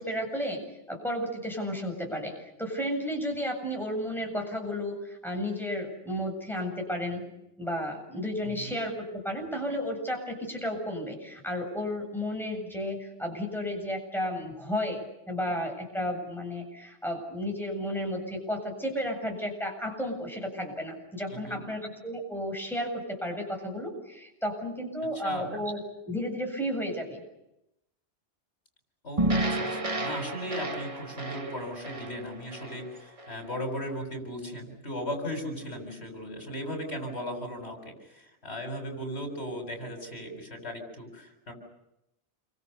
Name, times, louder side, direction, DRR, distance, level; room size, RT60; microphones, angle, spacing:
voice 1, 0.0-7.2 7.6-25.8 26.1-27.2, equal, ahead, 2 dB, 8.0 m, -33 dB
voice 2, 8.4-8.8 21.4-21.6 25.1-25.6 29.0-41.5, equal, 75° left, 4 dB, 7.5 m, -37 dB
sound 1, 29.2-33.5, right 1 dB, 30° right, 1.6 m, -31 dB
28.5 x 25.5 x 7.0 m, 0.86 s
omnidirectional pair, 1.1 m